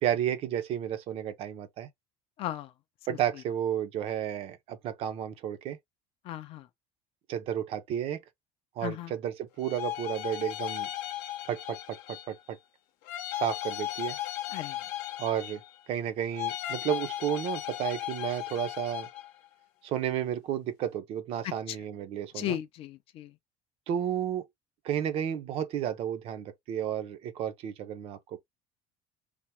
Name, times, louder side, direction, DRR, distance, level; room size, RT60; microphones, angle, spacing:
voice 1, 0.0-1.9 3.1-5.8 7.3-8.2 8.8-10.9 11.5-12.6 13.3-14.2 15.2-15.6 15.9-19.1 19.8-22.6 23.9-24.4 24.8-28.4, right 10 dB, 45° right, 0.5 m, -32 dB
voice 2, 2.4-2.7 6.3-6.6 8.8-9.1 14.5-14.8 21.7-21.8 22.4-23.3, left 12 dB, 40° left, 0.4 m, -35 dB
sound 1, 9.6-12.4 13.0-15.9 16.3-19.3, left 14 dB, 80° left, 0.7 m, -36 dB
3.3 x 2.0 x 2.8 m
cardioid pair, 175°, 14 cm